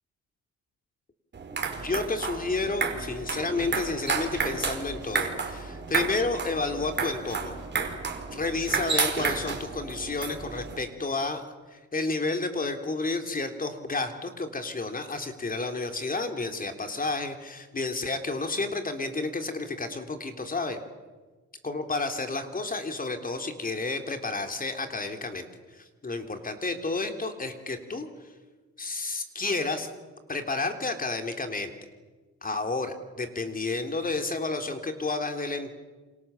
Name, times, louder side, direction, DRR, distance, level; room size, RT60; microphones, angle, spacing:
sound 1, 1.3-10.8, right 5 dB, 35° right, 4.6 m, -31 dB
voice 1, 1.5-7.6 8.3-11.4 11.7-20.8 21.6-28.1 28.8-29.9 30.3-31.7 32.4-35.8, left 3 dB, 30° left, 6 dB, 3.4 m, -31 dB
28.0 x 26.0 x 7.3 m, 1.3 s
cardioid pair, 90°, 30 cm